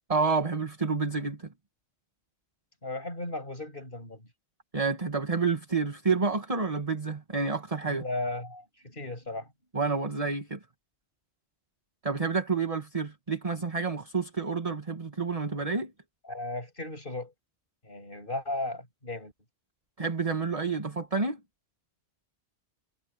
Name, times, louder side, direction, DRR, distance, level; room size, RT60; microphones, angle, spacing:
voice 1, 0.1-1.5 4.7-8.0 9.7-10.6 12.0-15.9 20.0-21.4, right 4 dB, 30° right, 1.7 m, -29 dB
voice 2, 2.8-4.2 7.8-9.5 16.2-17.3 17.8-19.3, left 2 dB, 50° left, 8.0 m, -36 dB
omnidirectional pair, 1.1 m